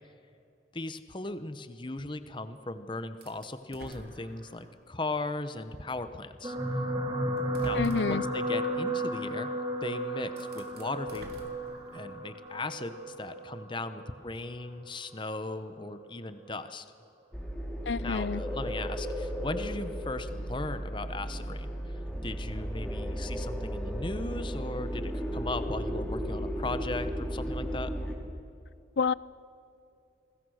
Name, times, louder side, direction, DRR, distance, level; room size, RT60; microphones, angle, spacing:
voice 1, 0.7-6.5 7.6-9.5 9.8-11.5 11.9-16.9 18.0-21.7 22.2-27.9, left 2 dB, 25° left, 0.9 m, -37 dB
sound 1, 3.2-4.8 5.4-5.5 6.7-6.8 7.4-8.3 9.8-9.9 10.3-12.2, right 1 dB, 55° right, 3.1 m, -48 dB
sound 2, 6.4-14.9 15.7-15.9 16.2-16.3, right 1 dB, 20° right, 2.9 m, -34 dB
voice 2, 7.7-8.2 17.9-18.4 29.0-29.1, left 5 dB, 70° left, 0.5 m, -28 dB
sound 3, 17.3-28.2, equal, 5° left, 2.7 m, -35 dB
28.0 x 20.5 x 6.5 m
head